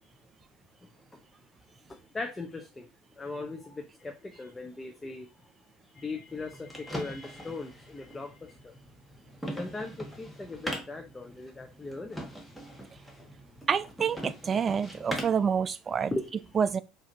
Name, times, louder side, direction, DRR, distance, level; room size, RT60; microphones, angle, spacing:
voice 1, 1.9-2.9 3.2-5.5 5.9-8.7 9.6-12.2 13.6-13.7 16.1-16.5, left 3 dB, 20° left, 0.7 m, -39 dB
sound 1, 6.3-15.5, equal, ahead, 1.3 m, -41 dB
voice 2, 13.7-16.1 16.6-16.8, right 7 dB, 35° right, 0.4 m, -27 dB
4.9 x 2.7 x 2.6 m
hypercardioid pair, 70°, 0 cm